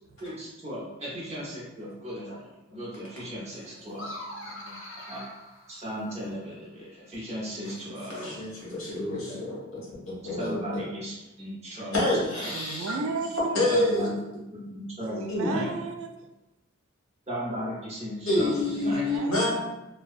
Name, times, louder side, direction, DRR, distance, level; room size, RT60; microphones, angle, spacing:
voice 1, 0.2-2.4 2.7-4.2 5.1-5.2 5.7-8.4 9.3-9.4 10.4-11.9 12.3-12.5 13.7-14.2 14.5-15.7 17.3-19.0, equal, 30° right, -5 dB, 0.6 m, -36 dB
sound 1, 3.9-6.4, left 1 dB, 60° left, 0.5 m, -42 dB
voice 2, 4.0-4.8 8.1-9.6 10.0-10.8 11.9-12.9 13.5-14.1 15.3-15.6 18.3-19.5, left 1 dB, 75° left, -6 dB, 1.0 m, -28 dB
voice 3, 12.5-13.6 15.0-16.2 18.8-19.5, right 4 dB, 70° right, 4 dB, 0.3 m, -34 dB
2.6 x 2.2 x 2.4 m, 0.98 s
head